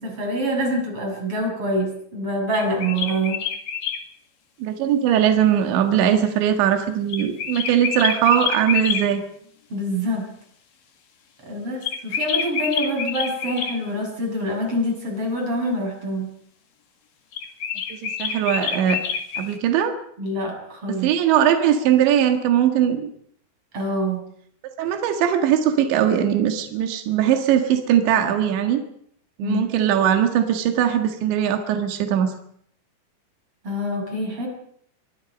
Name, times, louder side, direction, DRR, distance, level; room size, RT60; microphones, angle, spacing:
voice 1, 0.0-3.4 9.7-10.3 11.4-16.3 20.2-21.1 23.7-24.3 29.4-29.6 33.6-34.5, equal, 30° right, 1 dB, 7.9 m, -25 dB
sound 1, 2.5-4.0 7.1-9.0 11.8-13.8 17.3-19.5, left 7 dB, 50° left, 3.5 m, -27 dB
voice 2, 4.6-9.2 17.9-19.0 19.4-20.0 21.0-23.1 24.8-28.8 29.4-32.3, right 10 dB, 75° right, 5 dB, 4.1 m, -20 dB
26.0 x 23.5 x 5.3 m, 0.65 s
omnidirectional pair, 5.2 m